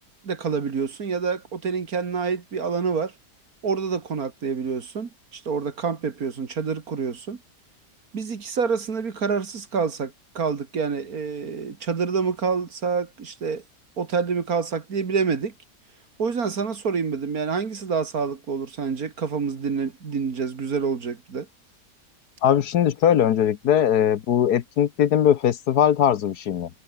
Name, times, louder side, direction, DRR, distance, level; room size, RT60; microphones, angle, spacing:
voice 1, 0.2-3.1 3.6-7.4 8.1-13.6 14.0-15.5 16.2-21.5, right 5 dB, 55° right, 2.3 m, -27 dB
voice 2, 22.4-26.7, left 9 dB, 70° left, 1.4 m, -20 dB
omnidirectional pair, 1.8 m